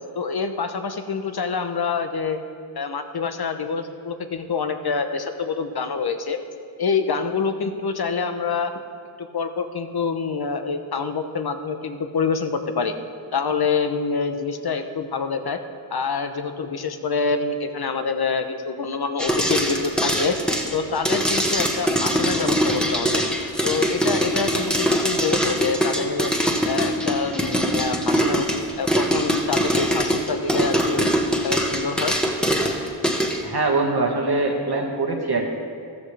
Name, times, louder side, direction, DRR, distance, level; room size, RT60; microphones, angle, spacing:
voice 1, 0.1-2.4 2.7-6.4 6.8-8.7 9.2-12.9 13.3-15.6 15.9-20.4 20.7-23.2 23.6-26.3 26.7-28.5 28.8-31.0 31.4-32.2, left 5 dB, 55° left, 8 dB, 0.9 m, -26 dB
sound 1, 19.2-33.4, equal, ahead, 1.3 m, -22 dB
voice 2, 33.4-35.4, right 3 dB, 55° right, 0 dB, 1.7 m, -23 dB
14.0 x 13.5 x 3.4 m, 2.3 s
cardioid pair, 55°, 46 cm